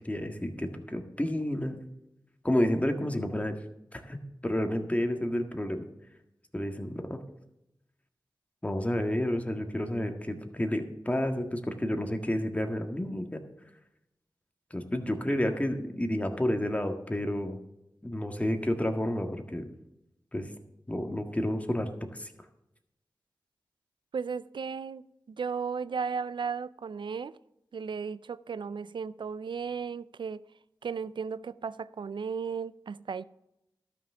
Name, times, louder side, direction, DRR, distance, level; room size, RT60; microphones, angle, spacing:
voice 1, 0.0-1.8 2.4-3.5 3.9-4.2 4.4-5.8 6.5-7.2 8.6-13.4 14.7-17.6 18.0-19.7 20.3-20.5 20.9-22.3, left 1 dB, 15° left, 1.6 m, -30 dB
voice 2, 24.1-27.3 27.7-30.4 30.8-33.2, right 6 dB, 75° right, 0.4 m, -35 dB
12.5 x 5.9 x 6.7 m
cardioid pair, 45°, 8 cm